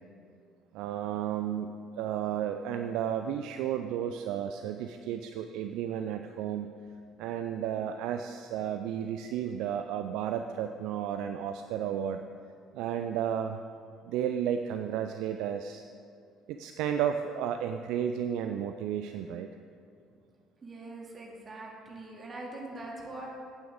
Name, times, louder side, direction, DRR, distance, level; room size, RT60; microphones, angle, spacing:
voice 1, 0.7-6.7 7.2-12.2 12.7-13.6 14.0-15.8 16.5-19.5, right 9 dB, 60° right, 7 dB, 0.3 m, -33 dB
voice 2, 20.6-23.3, right 2 dB, 30° right, -1 dB, 2.3 m, -42 dB
14.0 x 9.1 x 3.6 m, 2.3 s
figure-of-eight pair, 55°, 0 cm